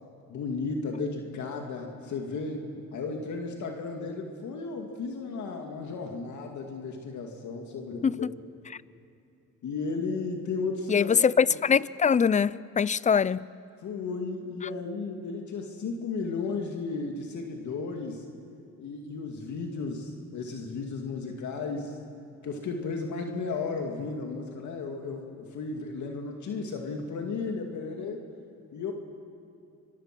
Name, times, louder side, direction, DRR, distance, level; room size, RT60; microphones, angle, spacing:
voice 1, 0.3-8.3 9.6-11.1 13.8-18.2 18.8-22.0 22.4-28.2 28.7-28.9, left 4 dB, 70° left, 2.4 m, -34 dB
voice 2, 10.9-13.5, left 6 dB, 25° left, 0.5 m, -23 dB
26.5 x 23.5 x 6.1 m
cardioid pair, 90°, 30 cm